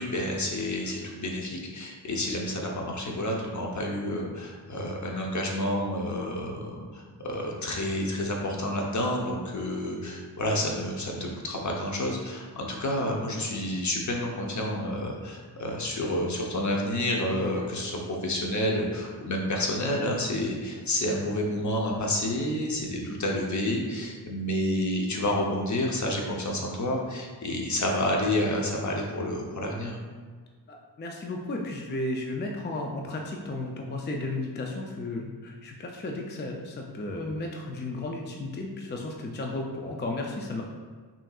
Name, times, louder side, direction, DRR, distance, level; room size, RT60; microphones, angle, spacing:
voice 1, 0.0-30.0, left 1 dB, 40° left, -1 dB, 0.8 m, -29 dB
voice 2, 30.7-40.6, left 2 dB, 25° left, 0 dB, 0.4 m, -34 dB
5.6 x 2.7 x 2.4 m, 1.5 s
wide cardioid pair, 70°, 43 cm